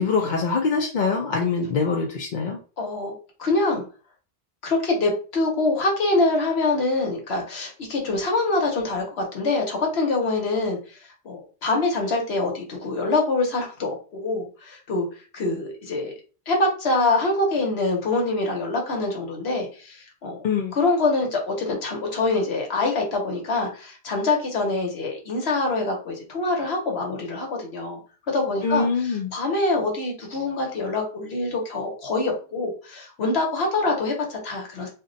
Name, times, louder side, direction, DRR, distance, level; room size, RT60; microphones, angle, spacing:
voice 1, 0.0-2.6 20.4-20.8 28.6-29.3, left 5 dB, 55° left, -1 dB, 0.6 m, -24 dB
voice 2, 2.8-3.1 3.4-3.8 4.6-15.1 15.3-16.1 16.5-20.4 20.7-28.0 28.3-34.9, left 2 dB, 90° left, 1 dB, 1.2 m, -25 dB
2.5 x 2.2 x 3.8 m, 0.37 s
omnidirectional pair, 1.0 m